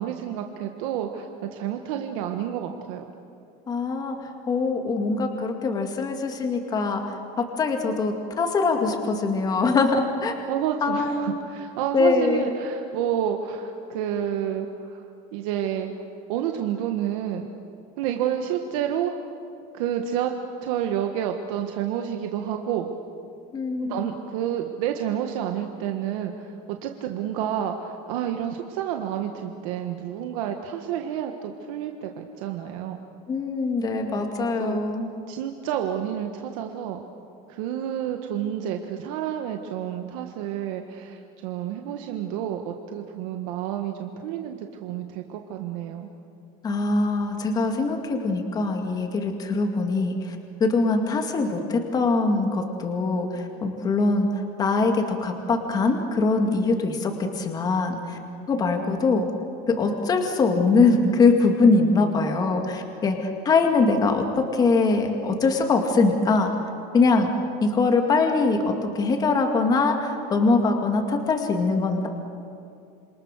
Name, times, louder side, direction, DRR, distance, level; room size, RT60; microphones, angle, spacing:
voice 1, 0.0-3.0 10.5-15.0 15.3-15.9 16.3-17.5 18.0-19.1 19.7-20.3 20.6-22.9 23.8-33.0 34.1-34.3 34.6-34.8 35.3-37.0 37.5-46.1, right 10 dB, 60° right, 4 dB, 1.6 m, -29 dB
voice 2, 3.7-4.2 4.5-7.0 7.4-10.3 10.8-11.4 11.9-12.5 23.5-24.0 33.3-35.1 46.6-50.1 50.6-54.3 54.6-58.2 58.5-59.3 59.8-66.5 66.9-67.3 67.6-68.6 69.0-72.1, left 3 dB, 20° left, 3 dB, 2.1 m, -22 dB
27.5 x 27.0 x 6.6 m, 2.5 s
cardioid pair, 170°, 20 cm